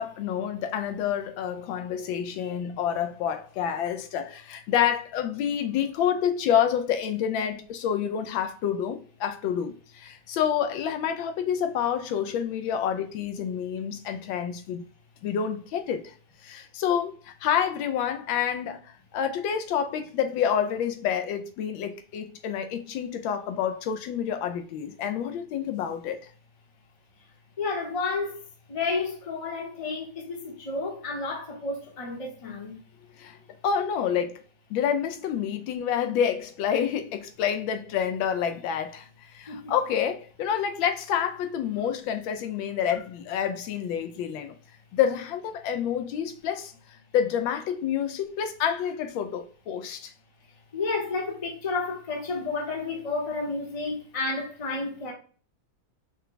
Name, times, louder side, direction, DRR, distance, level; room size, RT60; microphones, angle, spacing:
voice 1, 0.0-14.8 15.2-16.1 16.4-26.2 33.2-33.4 33.6-34.4 34.7-44.5 44.9-50.1, left 8 dB, 80° left, 1.3 m, -28 dB
voice 2, 27.6-28.4 28.7-32.8 39.5-39.6 50.7-55.1, left 3 dB, 25° left, 0.7 m, -31 dB
5.7 x 2.2 x 3.7 m
omnidirectional pair, 2.2 m